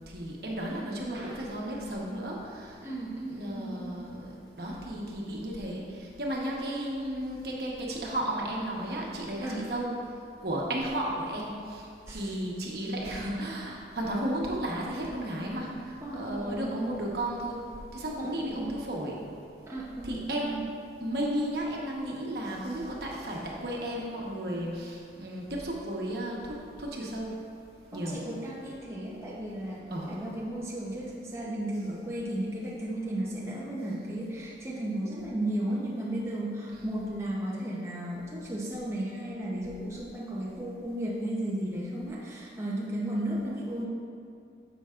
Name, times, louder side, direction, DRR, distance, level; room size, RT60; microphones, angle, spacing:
voice 1, 0.1-2.8 3.3-4.3 4.6-10.0 10.4-17.7 17.9-19.2 20.0-20.6 21.0-27.3 27.9-28.2 29.9-30.2 36.7-37.0, right 1 dB, 60° right, -3 dB, 1.2 m, -34 dB
voice 2, 2.8-4.0 9.4-9.6 12.1-12.3 16.0-16.8 18.2-18.7 19.6-20.6 27.9-43.9, right 1 dB, 15° right, -5 dB, 0.8 m, -34 dB
10.0 x 7.0 x 2.5 m, 2.4 s
head